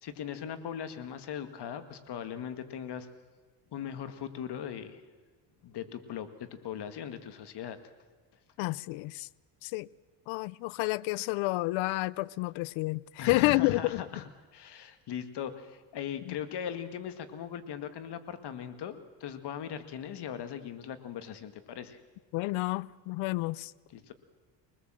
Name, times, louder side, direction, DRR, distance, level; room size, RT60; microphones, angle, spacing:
voice 1, 0.0-3.1 3.7-5.0 5.6-7.8 13.2-14.2 14.5-22.0 23.9-24.1, left 8 dB, 60° left, 1.9 m, -39 dB
voice 2, 8.6-9.3 9.6-9.9 10.3-14.0 16.3-16.4 22.3-23.7, left 21 dB, 90° left, 0.6 m, -30 dB
23.5 x 19.5 x 7.6 m
cardioid pair, 100°, 46 cm